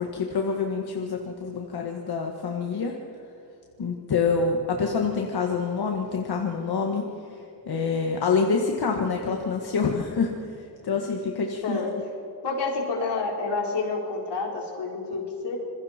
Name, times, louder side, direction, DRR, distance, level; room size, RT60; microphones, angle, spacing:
voice 1, 0.0-2.9 3.8-7.0 7.6-11.8, left 5 dB, 65° left, 2 dB, 1.7 m, -26 dB
voice 2, 11.6-11.9 12.4-15.6, left 3 dB, 85° left, -1 dB, 4.4 m, -29 dB
26.5 x 22.0 x 4.4 m, 2.8 s
wide cardioid pair, 135°, 40 cm